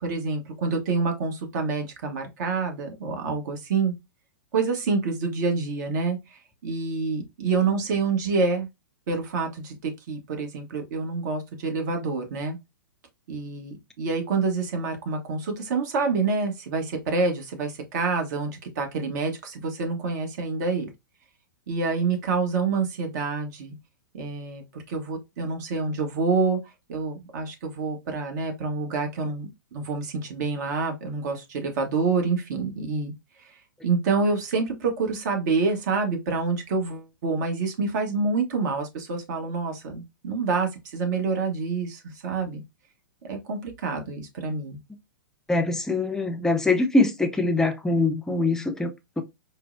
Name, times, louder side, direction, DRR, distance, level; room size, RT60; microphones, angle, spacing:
voice 1, 0.0-3.9 4.5-6.2 6.6-8.7 9.1-12.6 13.3-20.9 21.7-23.8 24.1-26.6 26.9-33.1 33.8-42.6 43.3-44.8, right 4 dB, 55° right, 1.0 m, -27 dB
voice 2, 45.5-49.2, left 2 dB, 5° left, 0.5 m, -23 dB
4.5 x 2.0 x 2.4 m
hypercardioid pair, 110°, 11 cm